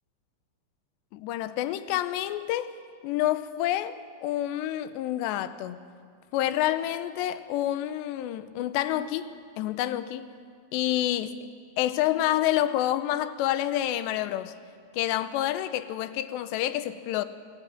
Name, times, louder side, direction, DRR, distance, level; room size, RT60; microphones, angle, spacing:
voice 1, 1.1-2.7 3.0-5.8 6.3-10.3 10.7-11.4 11.8-14.5 14.9-17.3, left 13 dB, 80° left, 13 dB, 2.7 m, -28 dB
20.5 x 17.0 x 9.1 m, 2.1 s
omnidirectional pair, 5.5 m